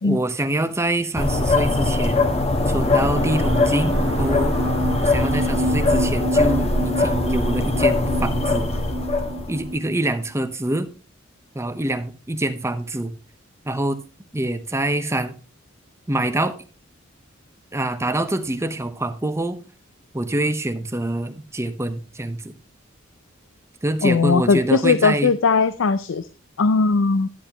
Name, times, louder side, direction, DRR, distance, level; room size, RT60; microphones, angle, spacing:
voice 1, 0.0-2.4 2.7-4.6 5.0-8.7 9.5-10.9 11.5-13.1 13.6-14.0 14.3-15.3 16.1-16.5 17.7-19.6 20.1-22.5 23.8-25.3, right 1 dB, 15° right, 0.8 m, -25 dB
sound 1, 1.1-9.7, left 2 dB, 30° left, 1.2 m, -21 dB
sound 2, 2.7-10.3, equal, 75° right, 0.7 m, -29 dB
voice 2, 24.0-26.3 26.6-27.3, left 4 dB, 65° left, 0.5 m, -19 dB
10.5 x 10.0 x 2.9 m
head